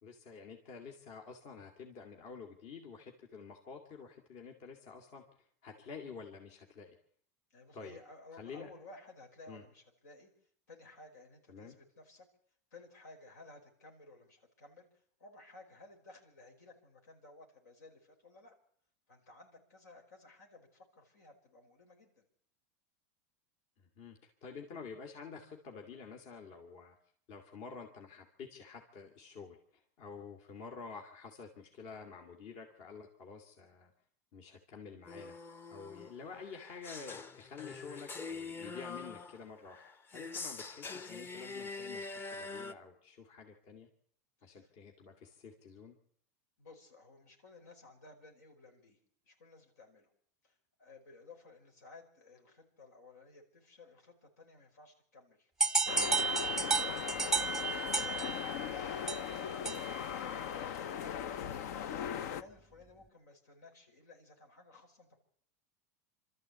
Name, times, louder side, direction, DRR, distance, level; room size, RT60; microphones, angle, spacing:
voice 1, 0.0-7.0 7.7-8.0 8.4-8.7 9.5-9.6 11.5-11.7 23.8-26.9 27.3-33.9 34.3-35.4 35.7-39.8 40.1-43.9 44.4-45.9 57.0-57.3, left 5 dB, 55° left, 3 dB, 2.7 m, -49 dB
voice 2, 7.5-12.3 12.7-18.6 19.1-22.3 44.4-44.7 46.6-49.0 49.2-50.1 50.4-55.5 57.5-65.2, left 3 dB, 90° left, 2 dB, 5.2 m, -57 dB
sound 1, 35.1-42.7, left 4 dB, 25° left, 0.9 m, -44 dB
sound 2, 55.6-60.1, right 4 dB, 5° right, 0.8 m, -33 dB
sound 3, 55.9-62.4, left 9 dB, 70° left, 0.9 m, -39 dB
24.5 x 13.5 x 8.3 m, 0.65 s
supercardioid pair, 120°, 9 cm